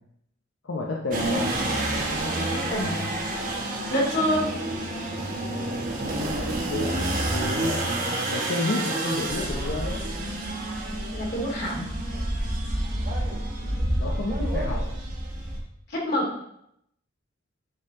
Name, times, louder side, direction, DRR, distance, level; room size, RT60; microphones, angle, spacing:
voice 1, 0.6-1.5 6.0-7.8 8.3-10.0 13.6-14.8, left 2 dB, 75° left, -2 dB, 0.9 m, -31 dB
sound 1, 1.1-15.6, right 1 dB, 45° right, 1.4 m, -28 dB
voice 2, 2.2-3.1 3.9-4.5 11.1-11.9 15.9-16.4, equal, 60° left, -3 dB, 2.7 m, -27 dB
9.7 x 4.5 x 3.8 m, 0.76 s
head